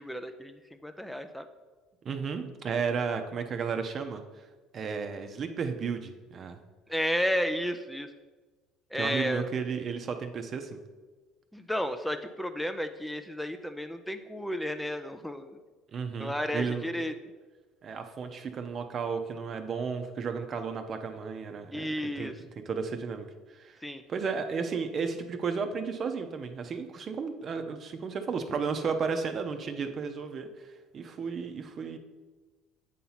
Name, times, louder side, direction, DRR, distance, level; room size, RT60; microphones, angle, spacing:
voice 1, 0.0-1.5 6.9-8.1 8.9-9.4 11.5-15.6 16.2-17.1 21.7-22.4 23.8-24.0, equal, 5° left, 7 dB, 0.4 m, -32 dB
voice 2, 2.0-4.5 4.7-6.6 9.0-10.8 15.9-16.9 17.8-21.9 22.2-23.8 24.1-32.0, right 5 dB, 45° right, 7 dB, 0.7 m, -33 dB
8.3 x 2.9 x 5.6 m, 1.3 s
hypercardioid pair, 70°, 0 cm